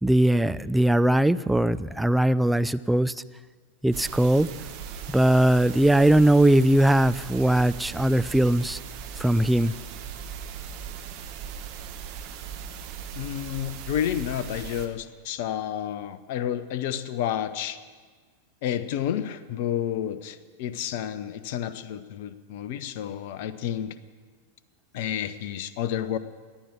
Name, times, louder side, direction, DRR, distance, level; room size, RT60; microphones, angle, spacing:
voice 1, 0.0-3.1 3.8-4.5 5.1-8.8 9.2-9.7, right 1 dB, 5° right, 13 dB, 0.4 m, -20 dB
sound 1, 3.9-14.9, right 8 dB, 45° right, 1.6 m, -39 dB
voice 2, 13.1-17.8 18.6-23.9 24.9-26.2, left 10 dB, 50° left, 14 dB, 0.8 m, -30 dB
17.5 x 11.0 x 7.5 m, 1.5 s
figure-of-eight pair, 90°, 0 cm